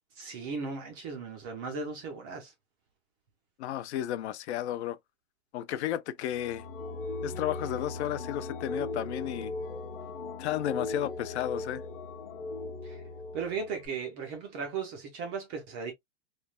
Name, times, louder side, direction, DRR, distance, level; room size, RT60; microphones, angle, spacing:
voice 1, 0.2-2.5 12.8-13.0 13.3-15.9, right 5 dB, 20° right, 0.3 m, -36 dB
voice 2, 3.6-5.0 5.5-6.6 7.2-9.5 10.4-11.8, left 12 dB, 65° left, 0.5 m, -33 dB
sound 1, 6.3-13.9, left 3 dB, 45° left, 0.8 m, -38 dB
3.2 x 2.2 x 2.3 m
supercardioid pair, 150°, 36 cm